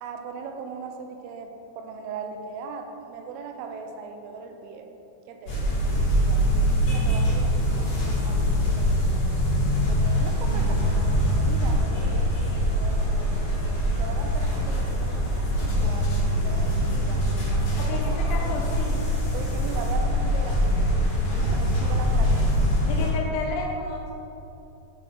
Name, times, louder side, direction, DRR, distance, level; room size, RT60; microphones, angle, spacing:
voice 1, 0.0-4.9 5.3-5.8 6.1-6.5 6.9-9.4 9.9-13.4 13.9-17.3 17.8-18.0 18.4-18.5 19.3-20.9 21.3-22.5 23.0-23.1, right 5 dB, 85° right, 5 dB, 3.1 m, -39 dB
sound 1, 5.5-23.1, equal, 60° left, 2.0 m, -23 dB
voice 2, 17.8-19.0 22.8-24.1, left 3 dB, 85° left, 0 dB, 2.6 m, -32 dB
8.8 x 4.1 x 4.5 m, 2.9 s
omnidirectional pair, 5.7 m